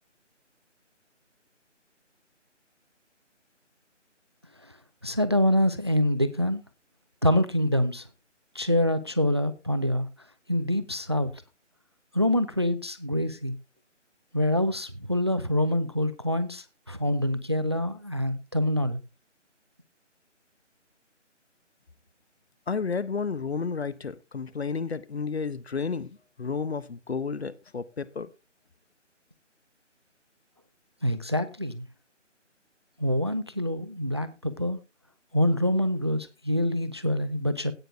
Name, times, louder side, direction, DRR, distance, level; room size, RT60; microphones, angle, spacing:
voice 1, 5.0-6.6 7.2-8.1 8.5-10.1 10.5-11.3 12.1-13.6 14.3-19.0 31.0-31.9 33.0-34.8 35.3-37.7, left 1 dB, 20° right, 0.6 m, -25 dB
voice 2, 22.7-28.3, left 5 dB, 55° left, 1.1 m, -32 dB
17.0 x 6.5 x 3.5 m
figure-of-eight pair, 160°, 37 cm